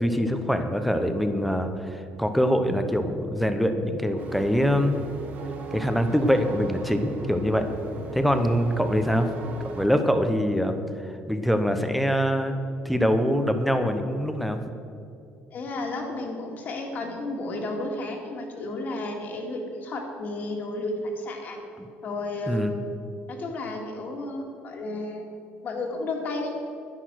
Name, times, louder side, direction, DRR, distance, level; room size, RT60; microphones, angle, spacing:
voice 1, 0.0-5.0 5.7-7.7 8.1-9.3 9.6-10.8 11.3-12.5 12.8-14.6 21.8-21.9 22.5-22.7, equal, ahead, 7 dB, 0.9 m, -24 dB
sound 1, 4.2-9.9, right 3 dB, 40° right, 1.3 m, -37 dB
voice 2, 15.5-21.6 22.0-22.8 23.3-25.2 25.6-26.5, left 2 dB, 40° left, 2 dB, 2.2 m, -32 dB
11.5 x 10.0 x 6.4 m, 2.5 s
cardioid pair, 155°, 4 cm